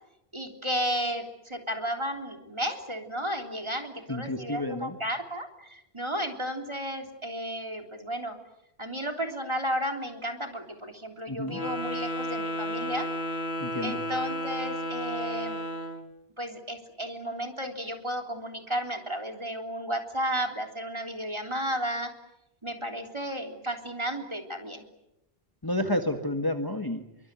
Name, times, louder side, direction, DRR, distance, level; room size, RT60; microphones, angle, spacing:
voice 1, 0.3-8.4 8.8-13.1 13.8-15.6 16.4-22.1 22.6-24.9, equal, 25° right, 4 dB, 3.6 m, -33 dB
voice 2, 4.1-4.9 11.3-11.6 13.6-14.0 25.6-27.0, left 1 dB, 20° left, 6 dB, 1.7 m, -30 dB
Wind instrument woodwind instrument, 11.5-16.1, equal, 80° left, 2.5 m, -33 dB
26.0 x 24.0 x 9.4 m, 0.85 s
omnidirectional pair, 1.1 m